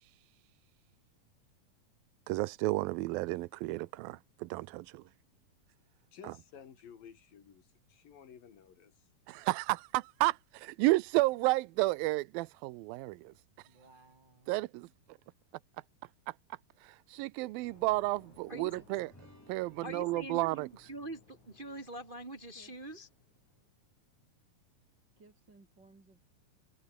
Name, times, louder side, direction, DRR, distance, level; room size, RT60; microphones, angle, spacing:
voice 1, 2.3-5.0 9.3-13.3 14.5-14.9 16.8-19.1 19.5-20.7, right 20 dB, 90° right, 2.5 m, -32 dB
voice 2, 6.1-9.1, left 8 dB, 75° left, 4.7 m, -54 dB
voice 3, 13.6-14.7 18.7-19.1 22.6-22.9 25.2-26.2, right 3 dB, 30° right, 5.1 m, -61 dB
sound 1, 17.6-23.9, left 5 dB, 55° left, 5.9 m, -63 dB
sound 2, 19.0-23.7, equal, 5° left, 5.1 m, -64 dB
voice 4, 19.8-20.4 20.9-23.1, right 1 dB, 65° right, 0.5 m, -43 dB
omnidirectional pair, 4.1 m